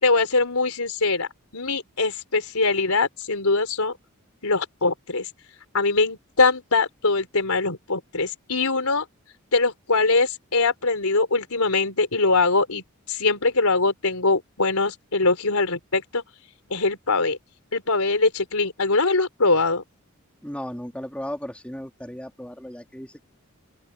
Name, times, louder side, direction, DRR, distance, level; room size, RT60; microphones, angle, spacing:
voice 1, 0.0-1.3 1.5-3.9 4.4-5.3 5.7-9.0 9.5-12.8 13.1-16.2 16.7-17.4 17.7-19.8, left 3 dB, 90° left, 4.0 m, -22 dB
voice 2, 20.4-23.2, equal, 5° left, 3.3 m, -35 dB
open air
head